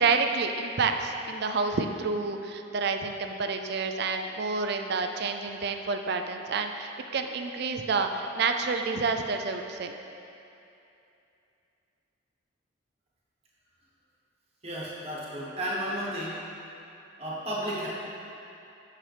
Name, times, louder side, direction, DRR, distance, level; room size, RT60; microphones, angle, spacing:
voice 1, 0.0-9.9, right 4 dB, 50° right, 5 dB, 0.4 m, -29 dB
voice 2, 14.6-16.4 17.2-17.9, equal, 30° right, -6 dB, 1.3 m, -33 dB
8.9 x 5.9 x 3.4 m, 2.8 s
head